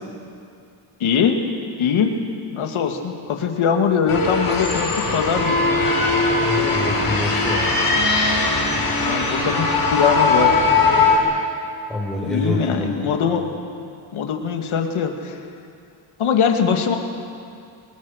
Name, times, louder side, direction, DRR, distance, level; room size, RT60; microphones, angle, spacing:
voice 1, 1.0-1.4 1.8-2.1 2.5-5.7 8.4-8.5 9.0-10.6 12.2-13.4 14.1-15.4 16.2-17.0, left 7 dB, 70° left, 4 dB, 2.5 m, -21 dB
sound 1, 4.1-11.2, left 3 dB, 45° left, 6.3 m, -19 dB
voice 2, 6.3-7.6 11.9-13.0, left 1 dB, ahead, -4 dB, 4.2 m, -26 dB
27.0 x 20.0 x 6.6 m, 2.4 s
cardioid pair, 105°, 50 cm